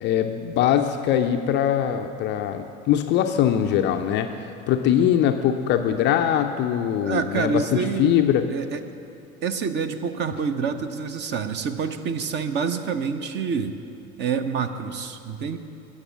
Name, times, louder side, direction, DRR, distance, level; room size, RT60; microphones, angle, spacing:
voice 1, 0.0-4.3 4.7-7.6 8.0-8.4, left 10 dB, 25° left, 6 dB, 0.5 m, -22 dB
voice 2, 7.0-8.2 8.5-8.8 9.4-13.8 14.2-15.6, right 6 dB, 25° right, 10 dB, 0.6 m, -27 dB
15.5 x 6.5 x 7.2 m, 2.6 s
figure-of-eight pair, 75°, 44 cm